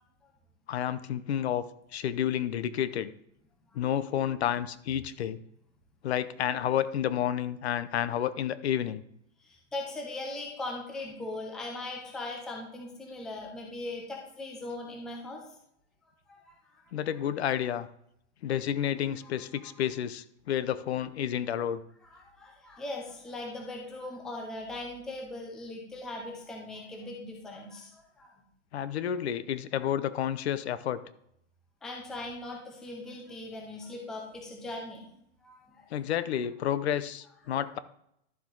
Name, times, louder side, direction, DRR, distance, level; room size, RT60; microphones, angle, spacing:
voice 1, 0.7-1.6 1.9-3.1 3.7-5.4 6.0-9.0 16.9-17.9 18.4-21.8 28.7-31.0 35.9-37.8, left 10 dB, 60° left, 15 dB, 0.8 m, -30 dB
voice 2, 9.4-15.4 16.3-16.8 19.2-19.8 22.0-28.3 31.8-35.1 35.4-35.9, left 2 dB, ahead, 0 dB, 0.5 m, -40 dB
12.0 x 7.4 x 3.9 m, 0.73 s
supercardioid pair, 170°, 37 cm